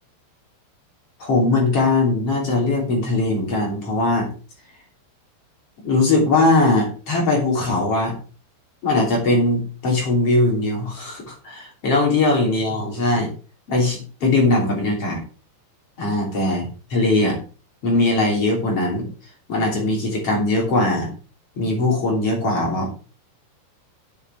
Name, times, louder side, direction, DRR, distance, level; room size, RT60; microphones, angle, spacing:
voice 1, 1.2-4.3 5.8-8.1 8.8-13.3 13.7-15.2 16.0-17.4 17.8-19.1 19.5-21.1 21.6-23.0, left 2 dB, 35° left, 0 dB, 3.4 m, -20 dB
9.3 x 8.1 x 4.9 m, 0.37 s
omnidirectional pair, 5.9 m